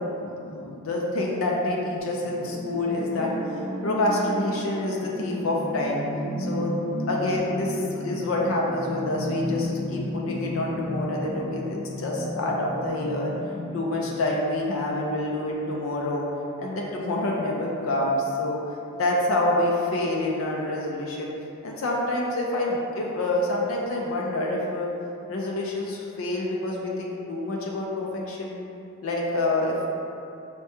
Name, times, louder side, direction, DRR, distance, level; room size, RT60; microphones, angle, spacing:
voice 1, 0.0-3.3 3.8-6.0 6.4-6.8 7.1-13.3 13.7-16.3 16.6-18.6 19.0-21.3 21.6-24.9 25.3-28.6 29.0-29.9, left 1 dB, 80° left, -2 dB, 0.4 m, -27 dB
sound 1, 2.0-14.0, equal, 10° right, 0.7 m, -33 dB
4.6 x 2.2 x 2.8 m, 2.7 s
head